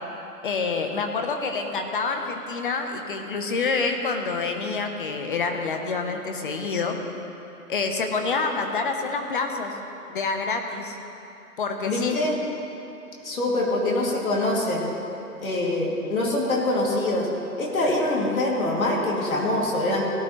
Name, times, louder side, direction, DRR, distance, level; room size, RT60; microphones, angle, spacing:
voice 1, 0.4-7.0 7.7-9.7 10.1-11.0 11.6-12.2, left 4 dB, 35° left, 4 dB, 1.0 m, -27 dB
voice 2, 11.8-12.4 13.2-14.9 15.4-17.3 17.6-20.0, left 1 dB, 60° left, -3 dB, 2.9 m, -24 dB
17.5 x 11.0 x 3.2 m, 2.9 s
figure-of-eight pair, 150°, 47 cm